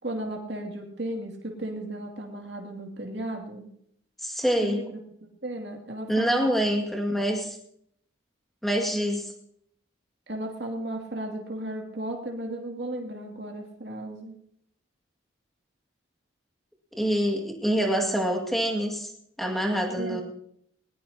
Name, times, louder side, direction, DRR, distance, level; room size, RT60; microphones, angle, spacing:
voice 1, 0.0-3.7 4.6-6.5 10.3-14.3 20.0-20.2, right 1 dB, 55° right, 1 dB, 2.5 m, -35 dB
voice 2, 4.2-4.8 6.1-7.6 8.6-9.3 17.0-19.1 19.4-20.2, equal, ahead, 1 dB, 2.1 m, -26 dB
20.0 x 19.5 x 2.9 m, 0.69 s
head